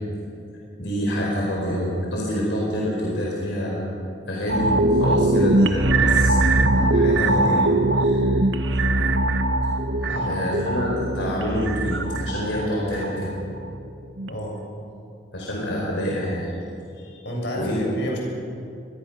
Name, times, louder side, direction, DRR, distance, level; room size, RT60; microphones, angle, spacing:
voice 1, 0.8-3.8 4.3-8.4 8.7-9.2 10.3-13.3 15.3-16.5 17.0-17.2 17.5-17.8, equal, 90° left, -3 dB, 4.6 m, -27 dB
sound 1, 4.5-13.8 14.2-14.3, right 2 dB, 75° right, 1.2 m, -21 dB
voice 2, 9.9-10.4 14.3-14.6 17.2-18.2, equal, 70° left, -1 dB, 7.0 m, -30 dB
25.5 x 21.5 x 6.0 m, 2.6 s
head